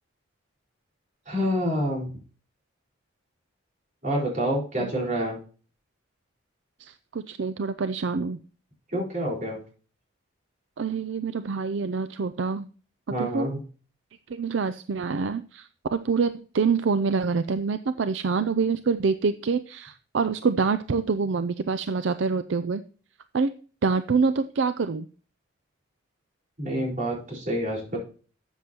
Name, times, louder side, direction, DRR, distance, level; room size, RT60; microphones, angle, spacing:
voice 1, 1.3-2.1 4.0-5.4 8.9-9.6 13.1-13.6 26.6-28.0, equal, 40° right, -3 dB, 4.4 m, -27 dB
voice 2, 6.8-8.4 10.8-12.7 13.2-13.5 14.3-22.8 23.3-23.5 23.8-25.1, right 5 dB, 65° right, 12 dB, 0.5 m, -26 dB
12.5 x 8.0 x 2.9 m, 0.39 s
head